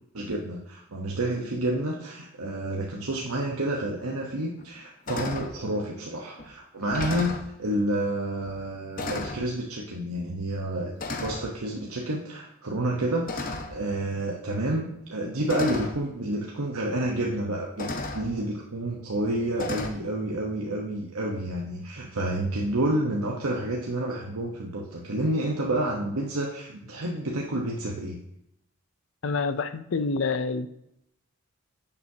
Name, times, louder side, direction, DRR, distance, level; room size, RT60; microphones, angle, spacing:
voice 1, 0.1-28.2, right 1 dB, 85° right, -2 dB, 1.1 m, -29 dB
sound 1, 4.0-4.1 4.6-4.8 5.1-5.5 6.4-6.5 6.8-7.5 8.4-8.6 9.0-9.5 10.4-10.6 11.0-11.5 13.2-13.9 14.9-15.0 15.5-16.0 17.1-17.2 17.8-18.3 19.6-19.9, left 2 dB, 40° left, 0.9 m, -33 dB
voice 2, 29.2-30.7, left 4 dB, 60° left, 13 dB, 0.5 m, -27 dB
11.0 x 7.1 x 2.8 m, 0.80 s
head